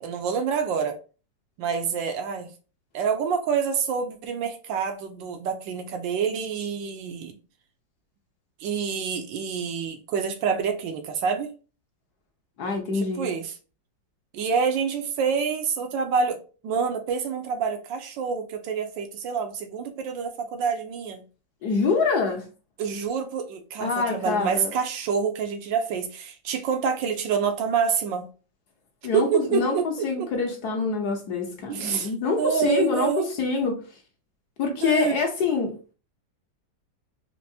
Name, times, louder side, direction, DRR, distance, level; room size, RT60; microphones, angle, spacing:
voice 1, 0.0-1.0 1.6-2.5 2.9-7.4 8.6-11.5 12.9-13.5 14.3-16.4 16.6-21.2 22.8-28.3 29.1-30.3 31.7-32.1 32.4-33.3 34.8-35.2, right 6 dB, 80° right, 1.4 m, -27 dB
voice 2, 12.6-13.3 21.6-22.4 23.8-24.7 29.0-33.8 34.6-35.7, left 4 dB, 60° left, 1.3 m, -25 dB
4.6 x 2.6 x 2.6 m
omnidirectional pair, 2.1 m